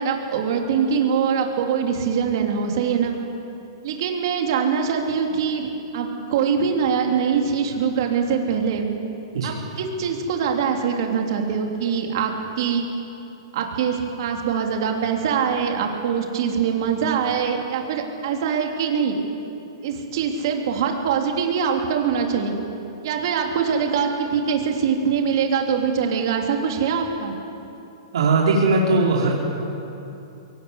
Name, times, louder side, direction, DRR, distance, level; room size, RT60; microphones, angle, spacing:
voice 1, 0.0-3.1 3.8-5.7 5.9-8.9 9.4-12.9 13.5-19.2 19.8-22.5 23.0-27.3, right 6 dB, 50° right, 2 dB, 3.2 m, -23 dB
voice 2, 28.1-29.4, right 3 dB, 75° right, -3 dB, 4.0 m, -19 dB
23.0 x 18.0 x 8.3 m, 2.8 s
hypercardioid pair, 155°, 3 cm